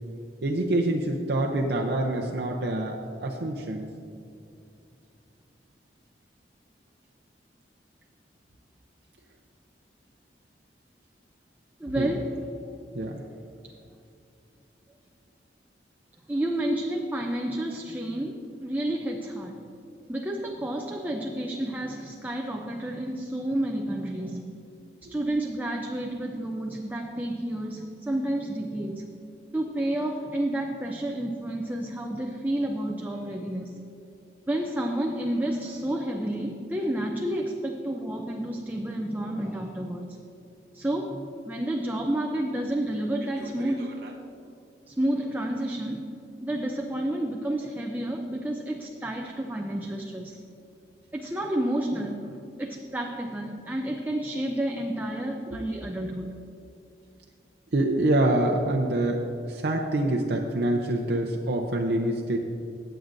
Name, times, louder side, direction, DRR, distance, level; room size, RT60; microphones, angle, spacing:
voice 1, 0.4-3.9 11.9-12.1 12.9-13.2 43.4-43.7 44.0-44.1 57.7-62.4, right 1 dB, 65° right, 0 dB, 0.7 m, -26 dB
voice 2, 11.8-12.5 16.3-19.6 20.1-24.5 25.1-29.1 29.5-33.8 34.5-40.2 40.7-44.0 44.9-50.4 51.1-56.3, right 1 dB, 10° right, 2 dB, 0.4 m, -30 dB
18.5 x 7.7 x 2.6 m, 2.6 s
head